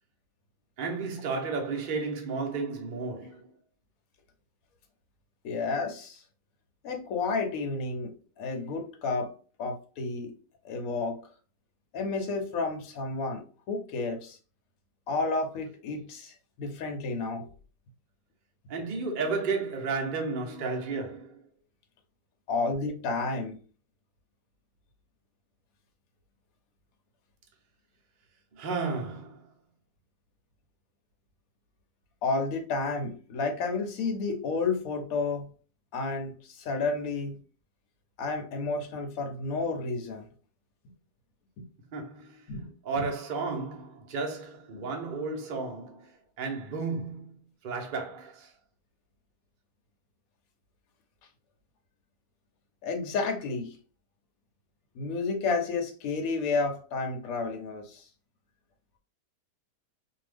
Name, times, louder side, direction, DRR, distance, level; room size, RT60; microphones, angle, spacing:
voice 1, 0.8-3.5 18.7-21.4 28.5-29.4 41.9-42.5 42.8-46.1 46.4-47.3 47.6-48.5, right 4 dB, 55° right, 0.5 m, -33 dB
voice 2, 5.4-6.2 6.8-9.3 9.6-10.3 10.6-11.2 11.9-14.4 15.1-17.5 22.5-23.6 32.2-35.5 35.9-37.4 38.2-40.3 42.5-42.7 43.0-43.1 44.7-44.9 52.8-53.8 54.9-58.1, left 3 dB, 65° left, 1.1 m, -31 dB
2.7 x 2.4 x 3.3 m
omnidirectional pair, 1.9 m